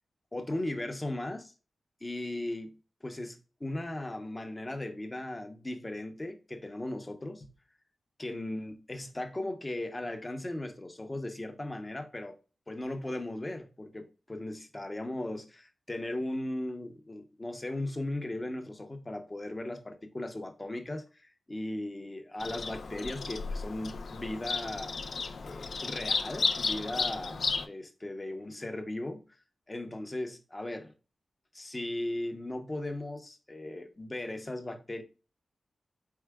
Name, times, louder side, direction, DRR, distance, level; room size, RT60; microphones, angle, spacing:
voice 1, 0.3-1.5 2.0-2.8 3.0-7.5 8.2-12.3 12.7-25.0 25.4-29.2 29.7-30.9 31.5-35.0, left 1 dB, 25° left, 0.8 m, -37 dB
Bird vocalization bird call bird song, 22.4-27.7, left 4 dB, 70° left, 0.5 m, -33 dB
4.6 x 4.2 x 2.3 m
wide cardioid pair, 80°, 0 cm